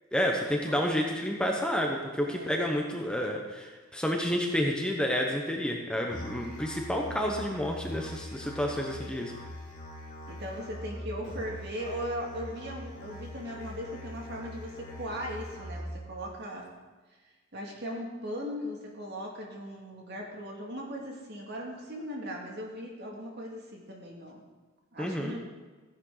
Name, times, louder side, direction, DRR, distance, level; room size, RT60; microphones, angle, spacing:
voice 1, 0.1-9.3 25.0-25.4, equal, 5° left, 0 dB, 0.9 m, -30 dB
voice 2, 2.2-2.6 10.3-16.7 17.5-24.4 24.9-25.4, equal, 50° right, -1 dB, 2.3 m, -38 dB
Musical instrument, 6.1-16.1, equal, 35° left, 2.7 m, -42 dB
15.0 x 10.5 x 3.9 m, 1.3 s
head